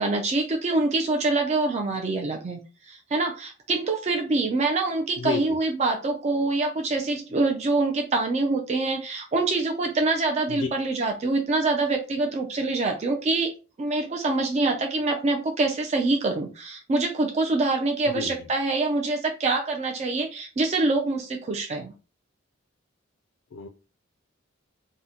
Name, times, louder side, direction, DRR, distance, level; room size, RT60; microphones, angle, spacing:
voice 1, 0.0-2.6 2.9-13.5 13.8-21.9, right 3 dB, 35° right, 2 dB, 0.3 m, -25 dB
voice 2, 5.2-5.4 10.5-10.7 18.1-18.3 23.5-23.7, left 4 dB, 70° left, 6 dB, 0.3 m, -29 dB
3.6 x 2.1 x 2.8 m, 0.33 s
head